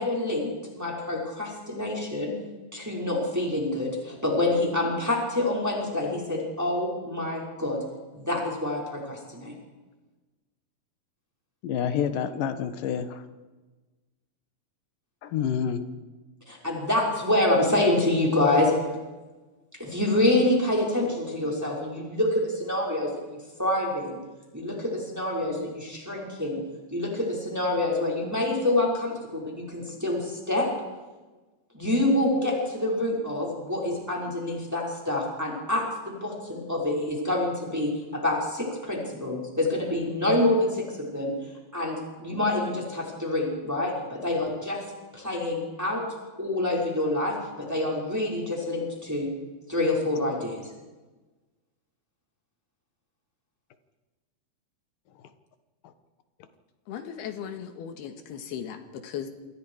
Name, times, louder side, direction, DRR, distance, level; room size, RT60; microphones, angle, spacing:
voice 1, 0.0-2.3 2.7-7.8 8.1-9.5 16.5-18.7 19.7-24.2 24.5-26.6 26.9-30.7 31.7-41.3 41.7-44.8 45.1-46.0 46.4-49.3 49.7-50.7, left 1 dB, 5° right, -2 dB, 5.3 m, -27 dB
voice 2, 11.6-13.2 15.2-15.9, left 8 dB, 65° left, 9 dB, 2.9 m, -28 dB
voice 3, 56.9-58.8 59.0-59.3, left 8 dB, 80° left, 7 dB, 3.7 m, -36 dB
28.5 x 25.0 x 5.0 m, 1.2 s
omnidirectional pair, 4.5 m